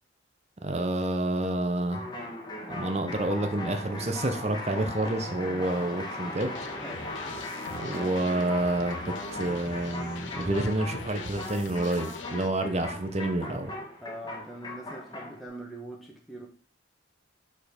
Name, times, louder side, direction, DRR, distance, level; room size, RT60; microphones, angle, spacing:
voice 1, 0.6-2.0 2.7-6.5 7.7-13.7, right 1 dB, 35° right, 8 dB, 0.7 m, -29 dB
sound 1, 1.9-15.4, left 2 dB, 20° left, 1.3 m, -38 dB
sound 2, 6.4-12.5, left 5 dB, 75° left, 0.6 m, -43 dB
voice 2, 6.7-7.4 14.0-16.5, right 1 dB, ahead, -2 dB, 0.9 m, -43 dB
5.1 x 4.3 x 5.1 m, 0.41 s
head